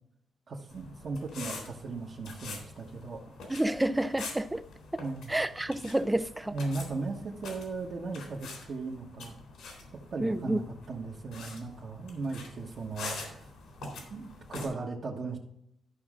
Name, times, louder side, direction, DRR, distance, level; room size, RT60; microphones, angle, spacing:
voice 1, 0.5-3.2 5.0-5.3 6.5-9.3 10.1-13.5 13.8-15.4, right 3 dB, 50° right, 1.3 m, -37 dB
sound 1, 0.7-14.7, left 3 dB, 85° left, 3.6 m, -45 dB
voice 2, 3.5-4.6 5.3-6.6 10.2-10.6, right 1 dB, 10° right, 0.5 m, -29 dB
13.0 x 6.2 x 3.7 m
wide cardioid pair, 145°, 0 cm